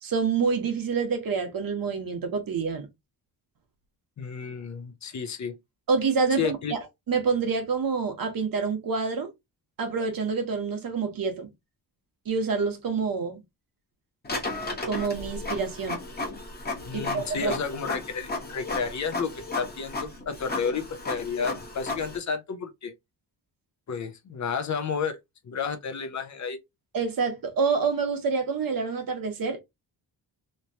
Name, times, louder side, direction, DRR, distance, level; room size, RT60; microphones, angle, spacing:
voice 1, 0.0-2.9 5.9-6.8 7.1-9.3 9.8-11.5 12.3-13.4 14.9-16.0 16.9-17.6 26.9-29.6, right 5 dB, 55° right, 1.2 m, -27 dB
voice 2, 4.2-5.6 6.4-6.7 16.9-22.9 23.9-25.2 25.4-26.6, left 6 dB, 45° left, 0.6 m, -31 dB
Printer, 14.2-22.2, left 2 dB, 25° left, 1.0 m, -34 dB
3.2 x 2.9 x 2.7 m
wide cardioid pair, 175°, 40 cm